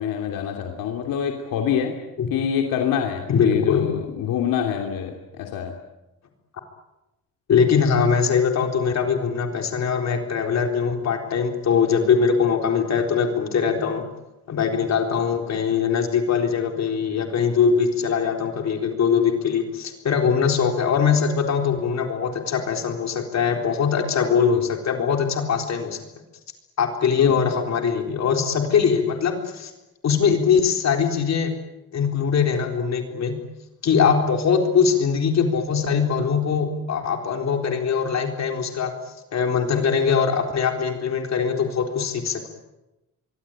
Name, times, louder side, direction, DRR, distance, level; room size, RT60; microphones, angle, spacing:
voice 1, 0.0-2.0 2.3-5.7 27.2-27.3, left 8 dB, 85° left, 2 dB, 3.1 m, -26 dB
voice 2, 3.3-3.8 7.5-14.1 14.5-26.0 26.8-29.7 30.0-31.5 31.9-33.4 33.8-38.9 39.3-42.5, left 6 dB, 55° left, 4 dB, 4.0 m, -22 dB
24.5 x 24.0 x 9.1 m, 1.0 s
cardioid pair, 135°, 33 cm